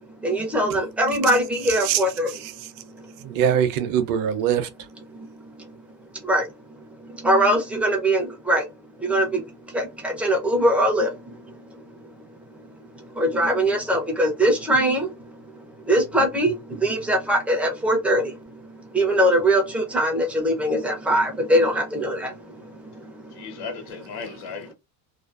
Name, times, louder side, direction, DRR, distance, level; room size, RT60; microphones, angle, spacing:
voice 1, 0.2-2.3 5.2-5.3 6.2-6.5 7.1-8.6 9.0-11.5 12.0-12.1 12.9-15.3 15.8-18.4 18.9-22.6 22.9-23.6, right 1 dB, 5° right, 0.4 m, -22 dB
voice 2, 1.6-2.7 3.2-4.7, right 9 dB, 55° right, 0.5 m, -24 dB
voice 3, 23.3-24.7, left 5 dB, 70° left, 1.0 m, -36 dB
2.5 x 2.2 x 2.3 m
cardioid pair, 180°, 40 cm